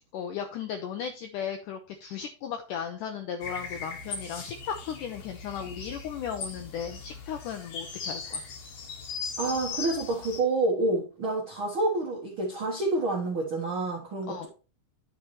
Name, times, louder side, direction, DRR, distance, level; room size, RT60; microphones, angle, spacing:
voice 1, 0.1-8.4 14.3-14.5, left 8 dB, 80° left, 1.9 m, -36 dB
sound 1, 3.4-10.4, left 5 dB, 55° left, 2.3 m, -38 dB
voice 2, 9.4-14.5, right 2 dB, 75° right, 1.2 m, -28 dB
9.8 x 7.5 x 3.1 m
omnidirectional pair, 4.5 m